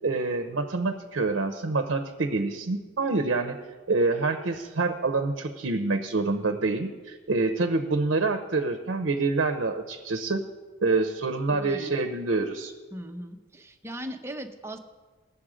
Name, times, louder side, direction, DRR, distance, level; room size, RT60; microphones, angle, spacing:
voice 1, 0.0-3.6 3.9-10.4 10.8-12.7, right 3 dB, 70° right, 6 dB, 0.7 m, -26 dB
voice 2, 11.5-11.9 12.9-14.8, right 1 dB, 15° right, 5 dB, 0.7 m, -38 dB
18.5 x 6.9 x 5.0 m, 1.4 s
head